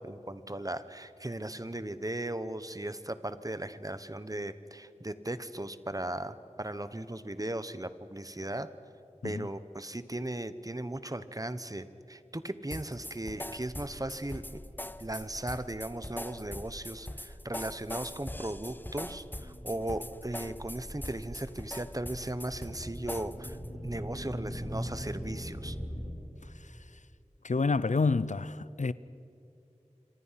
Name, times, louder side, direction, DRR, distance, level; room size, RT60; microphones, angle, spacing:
voice 1, 0.0-8.7 9.2-14.6 15.0-23.6 23.8-25.8, right 1 dB, 30° right, 1.0 m, -37 dB
sound 1, 12.7-23.7, left 1 dB, 15° left, 0.7 m, -42 dB
sound 2, 13.4-26.1, equal, 10° right, 5.9 m, -43 dB
voice 2, 27.4-28.9, left 4 dB, 80° left, 0.5 m, -28 dB
27.0 x 25.0 x 5.8 m
wide cardioid pair, 45°, 12 cm